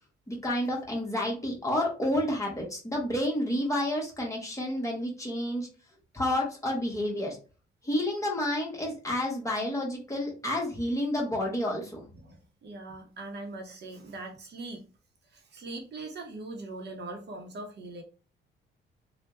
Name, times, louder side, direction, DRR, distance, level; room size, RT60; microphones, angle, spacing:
voice 1, 0.3-5.7 6.1-7.4 7.8-12.0, left 1 dB, 15° left, -1 dB, 1.4 m, -30 dB
voice 2, 12.1-14.8 15.3-18.0, right 2 dB, 60° right, 2 dB, 1.0 m, -41 dB
3.3 x 2.4 x 3.1 m, 0.34 s
cardioid pair, 90°, 20 cm